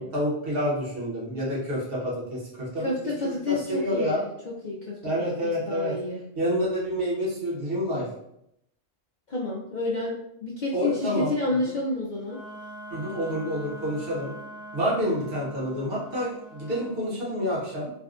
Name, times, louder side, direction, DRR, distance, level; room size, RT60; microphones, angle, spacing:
voice 1, 0.0-2.9 3.2-4.2 5.0-5.9 6.3-8.1 10.7-11.3 11.6-11.7 12.9-14.3 14.7-17.9, equal, 50° right, -6 dB, 1.2 m, -28 dB
voice 2, 2.8-4.3 4.6-5.0 5.4-6.2 9.3-12.4, left 2 dB, 80° left, -4 dB, 0.4 m, -29 dB
Wind instrument woodwind instrument, 12.2-17.0, equal, 5° right, 0.7 m, -43 dB
3.4 x 2.2 x 2.4 m, 0.79 s
omnidirectional pair, 1.3 m